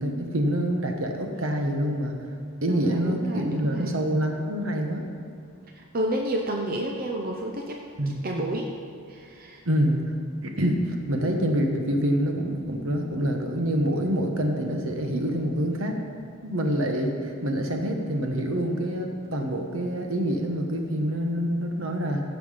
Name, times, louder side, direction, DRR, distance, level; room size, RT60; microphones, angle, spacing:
voice 1, 0.0-2.2 2.6-5.1 8.0-8.2 9.6-10.1 10.4-16.0 16.4-22.2, equal, 70° right, 3 dB, 1.2 m, -26 dB
voice 2, 2.7-3.9 5.8-8.7 9.1-9.6, right 1 dB, 40° right, 1 dB, 0.7 m, -31 dB
15.5 x 5.9 x 5.1 m, 2.5 s
head